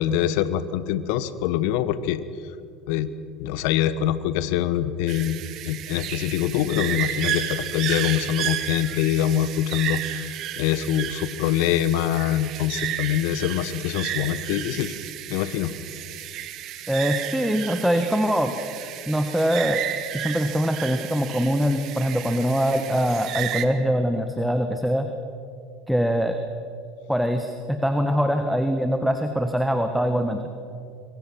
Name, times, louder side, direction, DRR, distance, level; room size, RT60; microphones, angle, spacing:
voice 1, 0.0-2.2 2.9-3.1 3.4-14.9 15.3-15.7, left 11 dB, 60° left, 14 dB, 1.2 m, -24 dB
sound 1, 5.1-23.7, right 12 dB, 50° right, 1.6 m, -32 dB
voice 2, 16.9-18.5 19.1-19.8 20.1-25.1 25.9-26.4 27.1-30.4, equal, ahead, 6 dB, 1.7 m, -23 dB
26.5 x 23.0 x 6.1 m, 2.5 s
hypercardioid pair, 75°, 0 cm